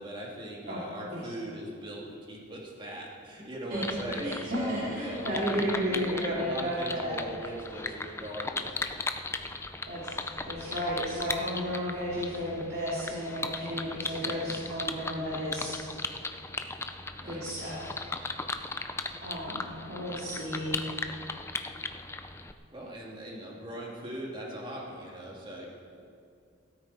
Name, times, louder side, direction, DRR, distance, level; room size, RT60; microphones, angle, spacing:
voice 1, 0.0-8.8 14.2-14.4 17.2-17.4 22.7-25.7, right 1 dB, 25° right, -3 dB, 2.3 m, -39 dB
sound 1, 3.7-22.5, left 3 dB, 15° left, 0.5 m, -37 dB
voice 2, 4.2-7.2 9.9-10.0 10.4-15.7 17.2-17.9 19.2-19.6 19.9-20.8, equal, 55° right, -7 dB, 3.0 m, -33 dB
17.0 x 14.0 x 4.2 m, 2.4 s
head